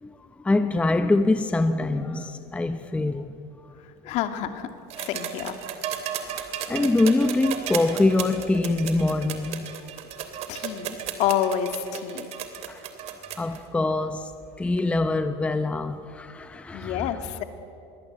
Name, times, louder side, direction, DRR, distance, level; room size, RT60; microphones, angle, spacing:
voice 1, 0.0-3.3 3.6-3.8 6.3-9.7 12.7-12.8 13.4-17.1, left 2 dB, 10° left, 0.7 m, -24 dB
voice 2, 4.0-4.7 5.0-5.6 10.5-12.3 16.7-17.4, left 10 dB, 55° left, 2.3 m, -28 dB
sound 1, 4.9-13.6 14.8-14.9, right 9 dB, 50° right, 3.0 m, -34 dB
25.5 x 22.5 x 8.1 m
supercardioid pair, 135°, 14 cm